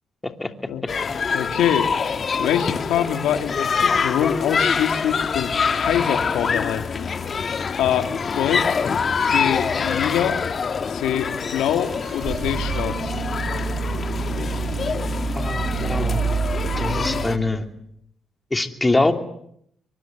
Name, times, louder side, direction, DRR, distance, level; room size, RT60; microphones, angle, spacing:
sound 1, 0.9-17.4, left 5 dB, 45° left, 1.8 m, -25 dB
voice 1, 1.3-1.9 2.4-7.1 7.8-8.8 9.3-10.4 10.9-13.1, left 10 dB, 85° left, 7 dB, 2.6 m, -24 dB
sound 2, 11.8-17.7, right 5 dB, 65° right, 7.0 m, -27 dB
voice 2, 15.3-16.3 16.8-17.6 18.5-19.1, left 2 dB, 15° left, 6 dB, 3.0 m, -23 dB
25.0 x 23.0 x 9.5 m, 0.71 s
cardioid pair, 90°, 0 cm